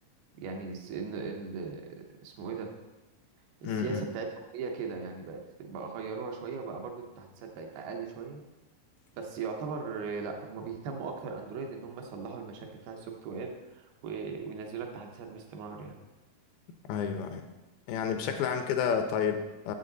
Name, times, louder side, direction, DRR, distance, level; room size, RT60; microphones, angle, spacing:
voice 1, 0.4-2.7 3.6-8.4 9.1-16.0, right 5 dB, 80° right, 2 dB, 2.8 m, -38 dB
voice 2, 3.6-4.0 16.9-17.4 17.9-19.7, left 7 dB, 80° left, 6 dB, 2.4 m, -30 dB
8.5 x 7.1 x 3.9 m, 1.1 s
omnidirectional pair, 4.5 m